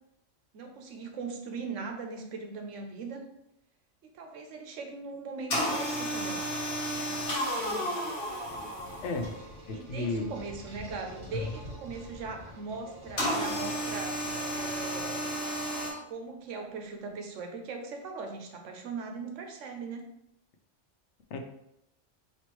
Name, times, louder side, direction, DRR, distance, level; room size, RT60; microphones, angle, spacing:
voice 1, 0.5-3.3 4.1-6.4 7.0-7.2 8.3-8.5 9.7-15.3 16.0-20.1, right 4 dB, 85° right, 4 dB, 1.1 m, -40 dB
sound 1, 5.5-9.4 13.2-15.9, equal, 55° left, 1.4 m, -32 dB
sound 2, 8.0-15.3, equal, 55° right, 1.7 m, -47 dB
voice 2, 9.0-9.3 9.7-10.3 21.3-21.4, left 3 dB, 75° left, 5 dB, 0.9 m, -33 dB
4.3 x 3.1 x 3.0 m, 0.80 s
omnidirectional pair, 1.2 m